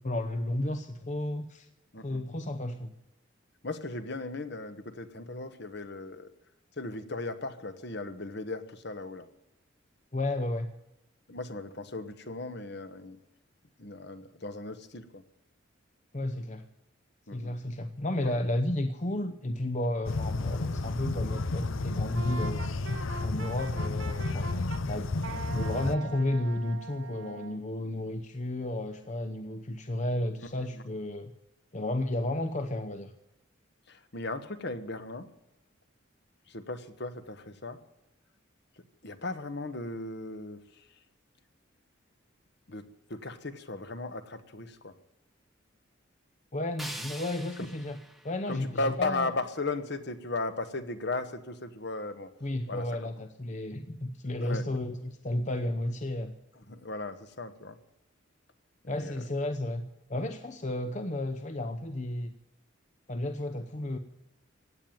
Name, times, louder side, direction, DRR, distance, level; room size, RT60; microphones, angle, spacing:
voice 1, 0.0-1.7 2.0-2.9 10.1-10.7 16.1-16.6 17.3-22.7 23.2-31.3 31.7-33.1 46.5-48.0 48.2-49.3 52.4-56.3 58.9-59.8 60.1-62.3 63.1-64.0, left 1 dB, 35° left, 8 dB, 0.8 m, -32 dB
voice 2, 3.6-6.3 6.8-9.3 11.3-13.2 13.8-15.2 17.3-17.6 18.2-18.4 30.7-30.8 33.9-35.3 36.5-37.8 39.0-40.8 42.7-42.8 43.1-45.0 48.5-52.3 52.7-52.9 54.4-54.6 56.7-57.8 58.9-59.2, left 2 dB, 55° left, 10 dB, 1.3 m, -36 dB
sound 1, 20.1-26.0, left 2 dB, 80° left, 0.8 m, -32 dB
Wind instrument woodwind instrument, 22.1-24.8 25.2-27.6, right 3 dB, 75° right, 1.8 m, -42 dB
sound 2, 46.8-49.8, right 1 dB, ahead, 1.0 m, -45 dB
16.5 x 9.0 x 9.2 m, 0.92 s
head